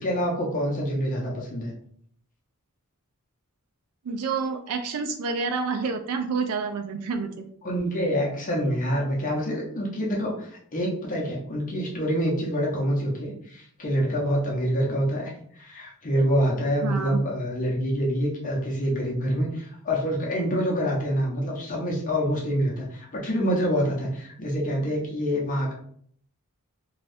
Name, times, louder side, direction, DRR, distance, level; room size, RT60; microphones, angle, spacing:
voice 1, 0.0-1.7 7.6-25.7, equal, 35° left, -2 dB, 0.6 m, -26 dB
voice 2, 4.1-7.4 16.8-17.2, right 5 dB, 80° right, 7 dB, 0.3 m, -28 dB
2.6 x 2.3 x 3.3 m, 0.62 s
head